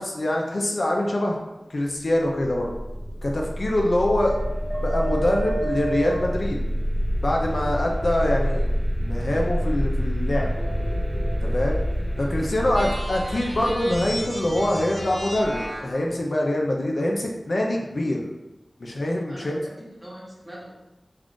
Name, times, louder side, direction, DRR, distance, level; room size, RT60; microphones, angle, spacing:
voice 1, 0.0-1.4 1.7-2.7 3.2-4.4 4.8-6.6 7.2-8.7 9.0-10.5 11.4-11.8 12.2-18.3 18.8-19.6, left 1 dB, 70° left, -1 dB, 0.5 m, -24 dB
sound 1, 2.4-15.9, equal, 10° right, 0.7 m, -27 dB
voice 2, 12.1-12.9 19.3-20.7, right 1 dB, 30° right, -6 dB, 1.0 m, -43 dB
sound 2, 12.7-16.1, right 1 dB, 60° right, 0.9 m, -34 dB
2.4 x 2.4 x 3.6 m, 0.98 s
wide cardioid pair, 60°, 0 cm